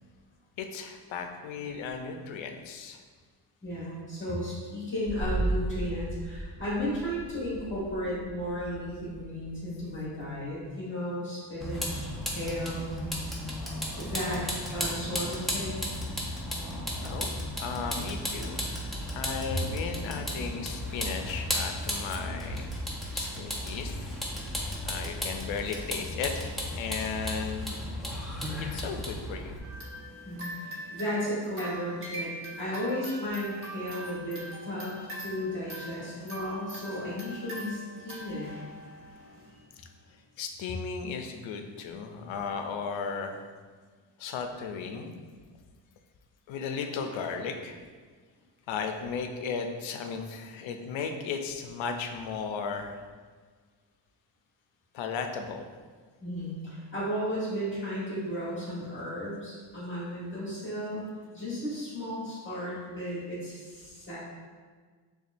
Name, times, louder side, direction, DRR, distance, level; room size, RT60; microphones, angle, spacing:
voice 1, 0.6-3.0 17.0-17.3 17.6-18.6 19.1-22.7 23.1-24.0 24.8-27.8 28.6-29.6 40.4-43.4 44.2-45.1 46.5-47.8 48.7-53.0 54.9-55.7, left 5 dB, 85° left, 5 dB, 0.6 m, -35 dB
voice 2, 3.6-12.9 14.0-14.4 14.7-15.9 30.2-32.3 32.6-38.5 56.2-64.2, equal, 25° left, -8 dB, 1.3 m, -34 dB
sound 1, 5.1-10.6, right 1 dB, 90° right, 1.0 m, -35 dB
Vehicle, 11.6-29.6, left 1 dB, ahead, 0.5 m, -34 dB
sound 2, 29.6-39.6, right 1 dB, 30° right, 1.1 m, -42 dB
6.8 x 2.4 x 2.5 m, 1.5 s
cardioid pair, 145°, 45 cm